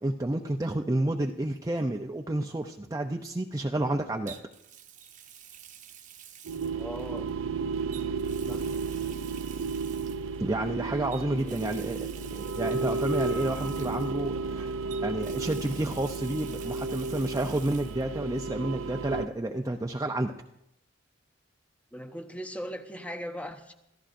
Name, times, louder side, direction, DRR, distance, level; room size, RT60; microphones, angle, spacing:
voice 1, 0.0-4.4 10.4-14.7 15.0-20.3, right 1 dB, 15° right, 2 dB, 0.5 m, -30 dB
Water tap faucet, 1.3-1.5 4.3-7.3 7.9-10.4 11.1-14.5 14.9-18.0 18.3-18.4 20.0-20.1, right 9 dB, 40° right, 0.9 m, -49 dB
sound 1, 6.4-19.3, right 4 dB, 85° right, 0.5 m, -33 dB
voice 2, 6.8-7.3 8.5-8.8 11.4-11.6 21.9-23.7, equal, 5° left, 6 dB, 0.9 m, -39 dB
26.5 x 14.0 x 2.6 m, 0.82 s
head